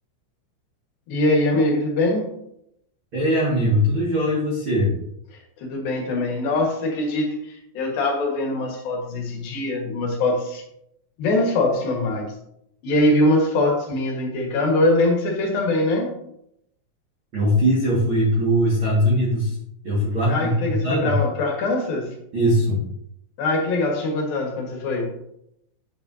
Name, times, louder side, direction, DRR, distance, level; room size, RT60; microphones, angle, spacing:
voice 1, 1.1-2.3 5.6-10.6 11.2-12.3 12.8-16.1 20.3-22.1 23.4-25.2, left 2 dB, 60° left, 1 dB, 2.7 m, -22 dB
voice 2, 3.1-4.9 17.3-19.5 19.8-21.2 22.3-22.8, equal, 65° right, -6 dB, 1.2 m, -20 dB
9.2 x 8.5 x 2.8 m, 0.77 s
omnidirectional pair, 5.8 m